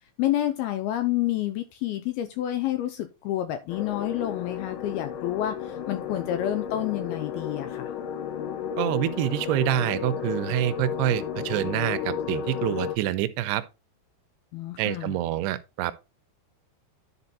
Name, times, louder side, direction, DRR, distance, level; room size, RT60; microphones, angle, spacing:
voice 1, 0.2-7.9 14.5-15.2, left 13 dB, 85° left, 2.3 m, -29 dB
sound 1, 3.7-13.0, left 8 dB, 65° left, 2.4 m, -33 dB
voice 2, 8.8-13.6 14.8-15.9, right 13 dB, 80° right, 2.5 m, -26 dB
10.5 x 4.4 x 4.1 m
omnidirectional pair, 5.0 m